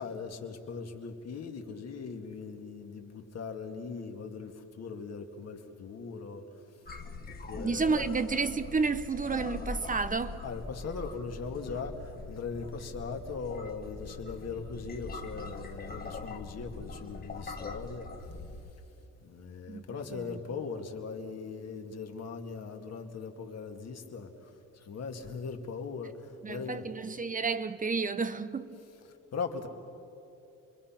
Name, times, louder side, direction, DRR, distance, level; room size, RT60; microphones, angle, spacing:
voice 1, 0.0-6.7 7.3-8.0 10.4-18.1 19.2-26.9 29.1-29.7, left 5 dB, 55° left, 2.3 m, -40 dB
sound 1, 6.9-18.7, left 3 dB, 30° left, 1.7 m, -42 dB
voice 2, 7.6-10.4 19.7-19.8 20.3-20.4 26.4-28.8, right 4 dB, 25° right, 0.9 m, -31 dB
28.5 x 22.5 x 5.9 m
cardioid pair, 90°, 30 cm